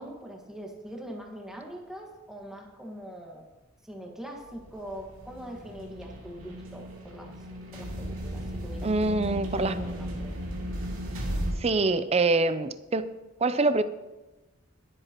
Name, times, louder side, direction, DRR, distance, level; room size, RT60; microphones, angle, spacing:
voice 1, 0.0-3.5 3.8-7.4 7.7-9.2 9.5-10.4, equal, 5° right, 1.6 m, -42 dB
sound 1, 4.5-11.5, equal, 85° right, 2.8 m, -35 dB
voice 2, 8.8-9.7 11.6-13.1 13.4-13.8, right 3 dB, 30° right, 0.5 m, -25 dB
22.5 x 7.9 x 3.0 m
head